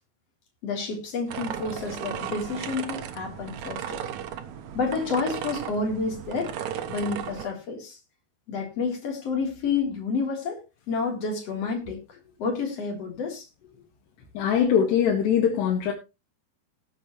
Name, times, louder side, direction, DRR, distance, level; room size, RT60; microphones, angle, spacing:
voice 1, 0.6-4.0 4.7-6.5 6.9-8.0 8.5-10.6 10.9-13.5, left 4 dB, 40° left, 4.2 m, -29 dB
sound 1, 1.3-7.5, right 9 dB, 75° right, 1.7 m, -35 dB
voice 2, 14.4-15.9, left 8 dB, 80° left, 3.9 m, -22 dB
19.0 x 8.3 x 3.1 m
omnidirectional pair, 4.7 m